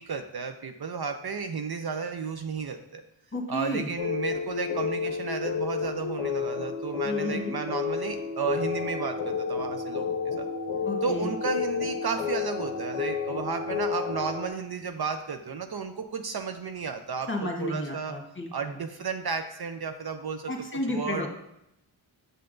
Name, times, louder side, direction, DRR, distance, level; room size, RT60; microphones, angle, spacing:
voice 1, 0.0-3.0 3.5-10.5 11.0-18.2 18.5-20.5 20.9-21.3, right 5 dB, 55° right, 7 dB, 0.5 m, -33 dB
voice 2, 3.3-3.9 7.0-7.5 10.8-11.3 17.3-18.5 20.5-21.3, left 1 dB, 25° left, 1 dB, 1.3 m, -32 dB
sound 1, 4.0-14.5, left 6 dB, 85° left, 0.6 m, -31 dB
sound 2, 8.4-14.5, left 2 dB, 30° right, 1.0 m, -40 dB
6.6 x 5.7 x 2.6 m, 0.82 s
cardioid pair, 50°, 48 cm